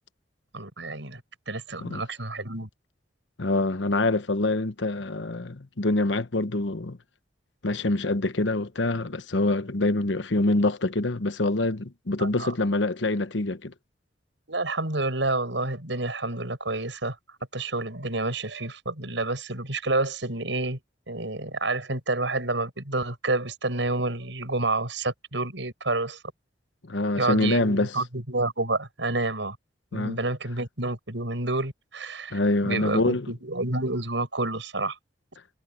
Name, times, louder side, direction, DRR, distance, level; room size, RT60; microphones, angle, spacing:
voice 1, 0.5-1.2 1.5-2.7 12.2-12.5 14.5-17.1 17.5-20.8 21.1-26.2 27.2-29.6 29.9-34.9, right 2 dB, 85° right, 6.7 m, -29 dB
voice 2, 3.4-7.0 7.6-13.7 26.8-27.9 29.9-30.2 32.3-33.3, left 2 dB, 90° left, 1.1 m, -25 dB
head